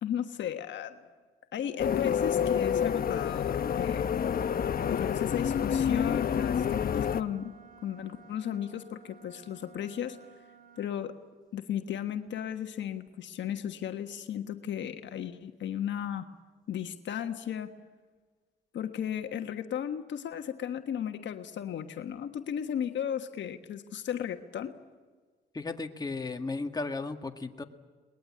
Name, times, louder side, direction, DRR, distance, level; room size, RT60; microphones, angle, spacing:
voice 1, 0.0-1.0 1.5-4.1 4.8-7.5 7.8-10.2 10.8-11.1 11.5-16.2 16.7-17.7 18.7-24.7, left 9 dB, 65° left, 7 dB, 1.3 m, -35 dB
sound 1, 1.8-7.2, left 8 dB, 45° left, 1.0 m, -28 dB
Wind instrument woodwind instrument, 6.1-11.0, right 7 dB, 45° right, 2.7 m, -55 dB
voice 2, 25.5-27.6, left 3 dB, 20° left, 5 dB, 1.9 m, -35 dB
22.5 x 20.5 x 8.6 m, 1.4 s
cardioid pair, 90°, 20 cm